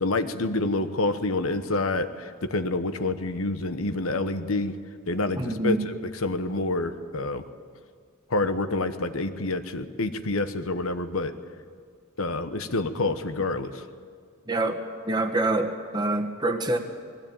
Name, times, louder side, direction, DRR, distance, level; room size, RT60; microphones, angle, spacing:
voice 1, 0.0-4.7 5.1-5.9 6.2-7.4 8.3-11.3 12.2-13.8, left 2 dB, 70° left, 9 dB, 1.1 m, -27 dB
voice 2, 5.4-5.8 14.5-16.8, right 2 dB, 20° right, 4 dB, 1.4 m, -26 dB
20.5 x 16.0 x 8.9 m, 2.1 s
head